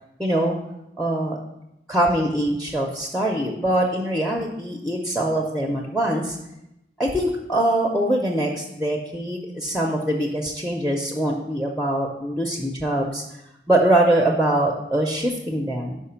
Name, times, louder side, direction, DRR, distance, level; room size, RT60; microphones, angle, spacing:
voice 1, 0.2-0.6 1.0-1.4 1.9-6.4 7.0-13.2 13.7-16.0, right 1 dB, ahead, 1 dB, 0.5 m, -23 dB
5.7 x 4.6 x 5.6 m, 0.87 s
head